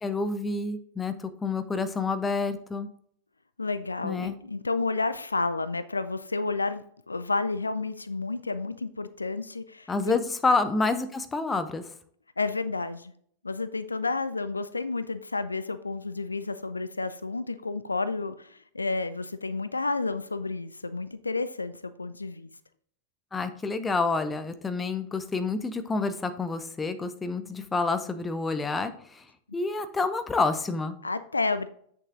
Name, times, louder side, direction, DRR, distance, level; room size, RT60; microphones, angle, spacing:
voice 1, 0.0-2.9 4.0-4.4 9.9-11.8 23.3-29.2 29.5-31.0, left 3 dB, 15° left, 10 dB, 0.8 m, -28 dB
voice 2, 3.6-10.2 12.4-13.1 13.4-22.5 31.0-31.7, left 3 dB, 80° left, 13 dB, 0.4 m, -31 dB
8.3 x 6.7 x 3.8 m, 0.62 s
figure-of-eight pair, 90°, 0 cm